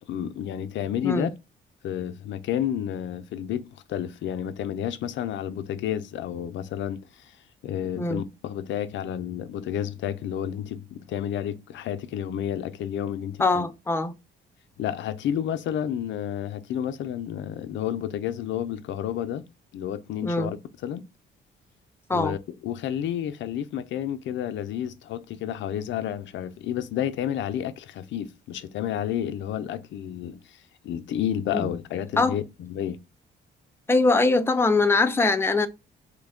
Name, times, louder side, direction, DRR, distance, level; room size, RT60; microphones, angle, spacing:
voice 1, 0.1-1.3 1.8-7.3 7.6-13.7 14.8-19.4 19.7-20.6 20.8-21.0 22.1-30.6 30.8-33.0, left 10 dB, 70° left, 0.4 m, -30 dB
voice 2, 13.4-14.1 20.2-20.6 22.1-22.4 31.5-31.6 32.2-32.4 33.9-35.7, left 3 dB, 10° left, 0.4 m, -22 dB
3.1 x 2.1 x 3.5 m
cardioid pair, 90°, 20 cm